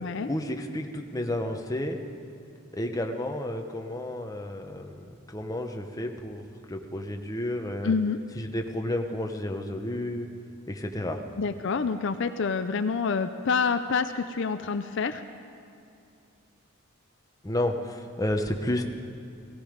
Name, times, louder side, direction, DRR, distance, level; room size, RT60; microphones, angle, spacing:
voice 1, 0.3-2.0 2.7-7.9 8.3-10.3 10.7-11.2 17.4-18.8, left 1 dB, 15° left, 3 dB, 0.9 m, -31 dB
voice 2, 7.8-8.2 11.4-15.2, left 5 dB, 60° left, 9 dB, 0.5 m, -27 dB
17.0 x 16.5 x 5.1 m, 2.6 s
head